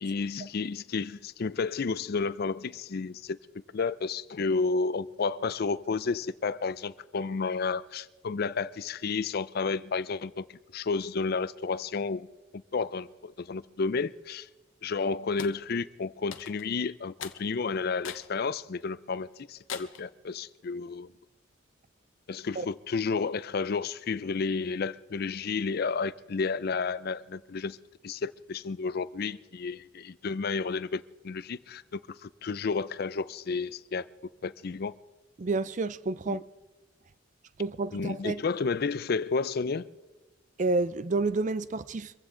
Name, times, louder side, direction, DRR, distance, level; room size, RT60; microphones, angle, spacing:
voice 1, 0.0-3.4 3.7-12.3 12.5-14.5 14.8-21.1 22.3-27.8 28.0-34.1 34.4-34.9 36.3-36.4 37.9-39.9, left 4 dB, 50° left, 0.4 m, -31 dB
sound 1, 15.4-15.6 16.3-16.7 17.2-17.4 18.0-18.3 18.8-18.9 19.7-20.1, left 7 dB, 70° left, 0.9 m, -40 dB
voice 2, 35.4-36.4 37.6-38.4 40.6-42.1, right 3 dB, 35° right, 0.4 m, -29 dB
24.0 x 15.0 x 3.8 m
head